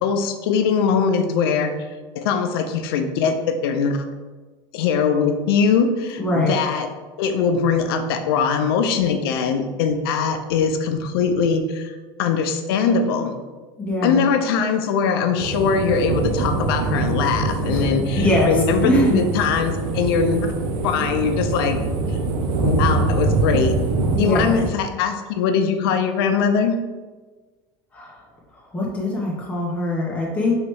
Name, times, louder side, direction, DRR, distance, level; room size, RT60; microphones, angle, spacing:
voice 1, 0.0-1.7 2.2-4.1 4.7-6.9 7.2-11.9 12.2-13.3 14.0-20.5 20.8-21.8 22.1-22.2 22.6-23.9 24.2-26.8, left 6 dB, 80° left, 6 dB, 0.5 m, -21 dB
voice 2, 6.2-6.5 13.8-14.2 17.7-17.8 18.2-18.5 18.8-19.2 24.2-24.5 27.9-28.1 28.7-30.5, left 1 dB, 10° left, -5 dB, 0.8 m, -22 dB
sound 1, 15.4-24.7, right 3 dB, 75° right, 0.6 m, -23 dB
3.2 x 2.9 x 4.6 m, 1.3 s
supercardioid pair, 110°, 12 cm